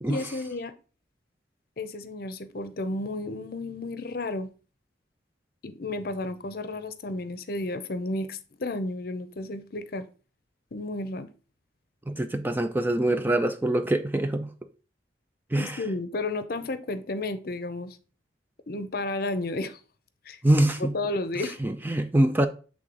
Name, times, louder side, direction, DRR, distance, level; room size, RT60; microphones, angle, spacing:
voice 1, 0.1-0.7 1.8-4.5 5.6-10.1 10.7-11.3 12.3-12.4 15.6-18.0 18.7-19.8 20.3-20.4 20.8-21.6, left 2 dB, 55° left, 0.6 m, -32 dB
voice 2, 12.1-14.5 15.5-15.8 20.4-20.9 21.6-22.5, right 1 dB, 10° right, 0.4 m, -24 dB
7.7 x 3.6 x 3.8 m
head